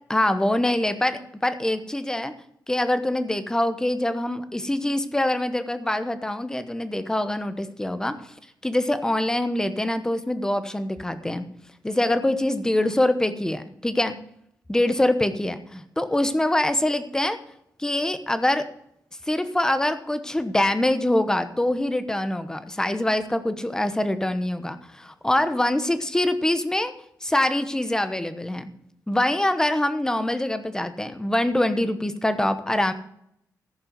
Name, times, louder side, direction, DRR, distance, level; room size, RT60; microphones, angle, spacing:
voice 1, 0.1-2.3 2.7-8.2 8.6-11.5 11.8-14.1 14.7-17.4 17.8-18.7 19.3-26.9 27.2-28.7 29.1-32.9, left 1 dB, 10° left, 11 dB, 1.0 m, -24 dB
14.5 x 5.5 x 7.5 m, 0.74 s
cardioid pair, 105°, 7 cm